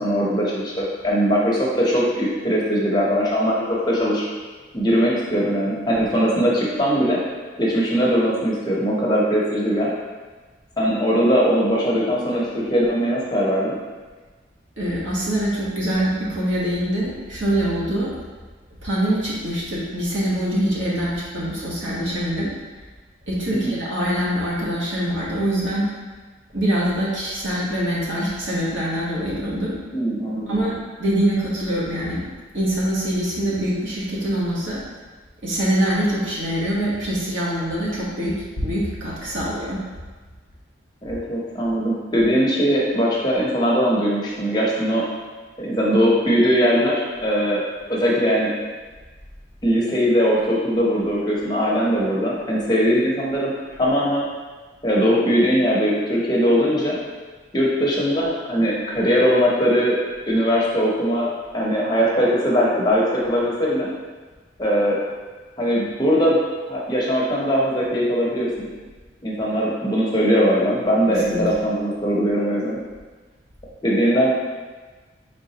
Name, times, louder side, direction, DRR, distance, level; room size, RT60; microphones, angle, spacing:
voice 1, 0.0-4.2 4.7-7.2 7.6-9.9 10.8-13.8 23.6-23.7 29.9-30.6 41.0-45.0 45.6-47.6 47.9-48.5 49.6-54.2 54.8-57.0 57.5-60.0 60.3-63.9 64.6-65.0 65.6-66.4 66.7-68.7 69.2-72.8 73.8-74.3, equal, 20° left, -5 dB, 0.7 m, -20 dB
voice 2, 14.8-18.1 18.8-22.5 23.3-25.9 26.5-29.7 30.5-32.2 32.5-34.8 35.4-39.8 71.3-71.4, right 1 dB, 75° right, -6 dB, 1.2 m, -24 dB
4.8 x 3.6 x 2.8 m, 1.4 s
head